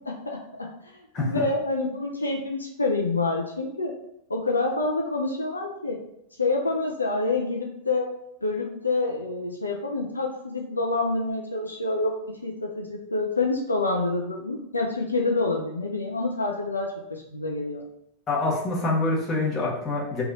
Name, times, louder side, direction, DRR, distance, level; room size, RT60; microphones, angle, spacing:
voice 1, 1.2-3.9 4.3-6.0 6.4-8.1 8.4-12.1 12.4-17.8, left 3 dB, 80° left, 0 dB, 0.4 m, -27 dB
voice 2, 18.3-20.2, left 2 dB, 25° left, -4 dB, 1.1 m, -26 dB
3.2 x 2.3 x 3.9 m, 0.80 s
figure-of-eight pair, 90°, 0 cm